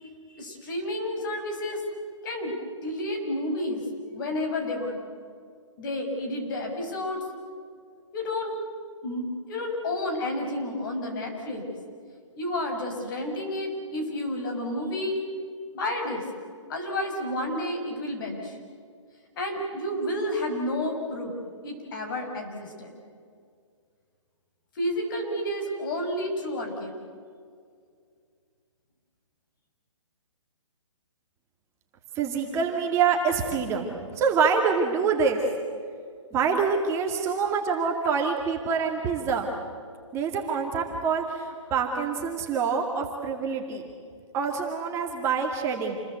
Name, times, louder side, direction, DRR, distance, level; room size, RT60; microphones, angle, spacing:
voice 1, 0.3-1.8 2.2-2.5 2.8-3.8 4.1-5.0 5.8-7.2 8.1-8.6 9.0-11.6 12.4-15.2 15.7-16.2 16.7-18.6 19.4-21.3 21.6-22.9 24.8-26.9, left 1 dB, 40° left, 2 dB, 6.3 m, -30 dB
voice 2, 32.2-35.4 36.3-39.5 40.1-43.9 44.3-46.0, right 5 dB, 15° right, 1 dB, 2.1 m, -26 dB
28.5 x 21.5 x 8.2 m, 2.2 s
hypercardioid pair, 155°, 16 cm